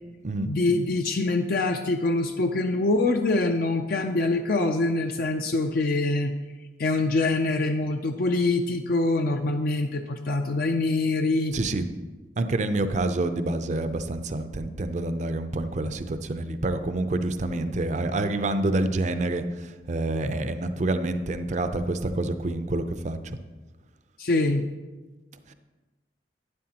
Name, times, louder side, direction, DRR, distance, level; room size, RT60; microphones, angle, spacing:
voice 1, 0.5-6.3 6.8-11.6 24.2-24.7, left 2 dB, 55° left, 5 dB, 0.4 m, -24 dB
voice 2, 11.5-11.8 12.4-19.4 19.9-23.4, right 2 dB, 40° right, 10 dB, 0.5 m, -27 dB
11.5 x 9.8 x 2.9 m, 1.3 s
head